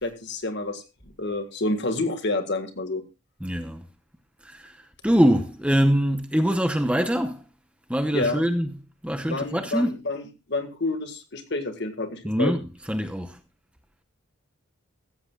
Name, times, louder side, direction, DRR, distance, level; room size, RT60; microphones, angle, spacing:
voice 1, 0.0-3.0 8.1-8.4 9.3-12.5, left 2 dB, 50° left, 1.7 m, -29 dB
voice 2, 3.4-3.8 4.4-4.8 5.0-7.4 7.9-8.7 9.0-9.9 12.2-13.4, equal, 5° right, 0.8 m, -23 dB
15.5 x 14.0 x 2.3 m
head